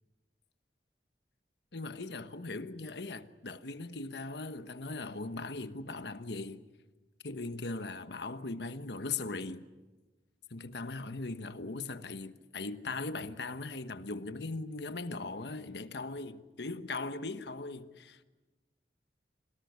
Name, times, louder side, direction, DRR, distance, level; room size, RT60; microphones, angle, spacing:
voice 1, 1.7-6.6 7.2-9.7 10.5-18.2, left 3 dB, 70° left, 1.2 m, -39 dB
26.5 x 18.0 x 9.5 m
head